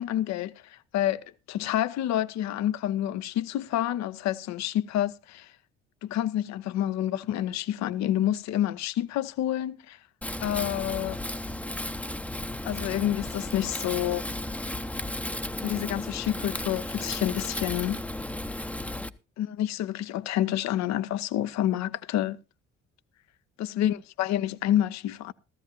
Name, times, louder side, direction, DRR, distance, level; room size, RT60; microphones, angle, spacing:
voice 1, 0.0-5.5 6.0-10.0 10.4-11.2 12.6-14.2 15.6-18.0 19.4-22.4 23.6-25.3, left 12 dB, 50° left, 0.8 m, -28 dB
Wind, 10.2-19.1, left 1 dB, 5° left, 0.8 m, -34 dB
15.0 x 14.5 x 2.8 m
figure-of-eight pair, 45°, 35 cm